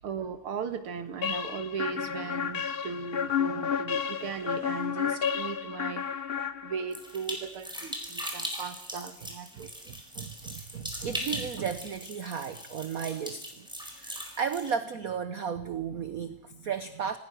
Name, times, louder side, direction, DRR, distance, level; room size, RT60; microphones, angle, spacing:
voice 1, 0.0-6.1 6.6-9.7, right 6 dB, 80° right, 9 dB, 2.4 m, -37 dB
sound 1, 1.2-7.1, left 8 dB, 85° left, 0.5 m, -31 dB
sound 2, 6.9-14.7, equal, ahead, 4.4 m, -39 dB
voice 2, 9.5-13.7 14.0-17.2, right 7 dB, 55° right, 11 dB, 1.1 m, -34 dB
26.5 x 19.5 x 6.2 m, 0.75 s
omnidirectional pair, 2.4 m